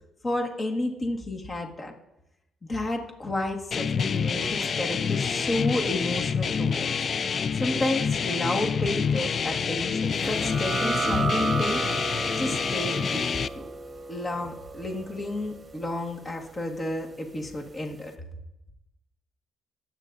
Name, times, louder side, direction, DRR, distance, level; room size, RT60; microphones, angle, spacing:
voice 1, 0.2-1.9 2.6-6.9 7.5-11.8 12.4-13.2 13.5-13.7 14.1-18.1, left 1 dB, 30° left, 2 dB, 1.7 m, -31 dB
sound 1, 3.7-13.5, left 6 dB, 50° left, 0.3 m, -27 dB
sound 2, 10.2-17.5, right 4 dB, 30° right, 1.0 m, -34 dB
21.0 x 8.5 x 2.6 m, 0.86 s
cardioid pair, 90°, 0 cm